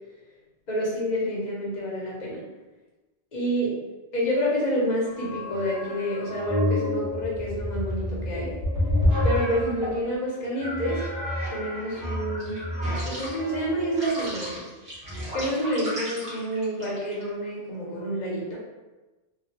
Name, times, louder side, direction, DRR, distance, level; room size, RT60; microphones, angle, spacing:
voice 1, 0.7-2.4 3.3-3.8 4.1-8.5 9.2-11.1 11.5-12.6 13.0-14.7 15.3-18.6, equal, 45° left, -4 dB, 0.9 m, -28 dB
sound 1, 5.1-10.0 10.6-17.2, left 1 dB, 50° right, 1.3 m, -29 dB
2.8 x 2.3 x 2.8 m, 1.2 s
omnidirectional pair, 1.1 m